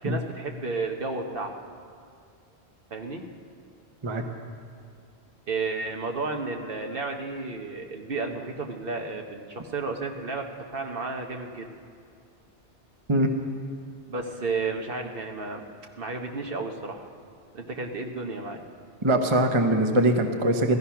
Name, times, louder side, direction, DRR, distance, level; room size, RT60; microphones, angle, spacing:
voice 1, 0.0-1.6 2.9-3.3 5.5-10.5 10.7-11.7 14.1-15.6 16.0-17.0 17.5-18.6, right 3 dB, 55° right, 3 dB, 1.1 m, -32 dB
voice 2, 19.0-20.8, right 1 dB, 30° right, 5 dB, 0.9 m, -22 dB
15.5 x 13.5 x 5.7 m, 2.3 s
omnidirectional pair, 1.1 m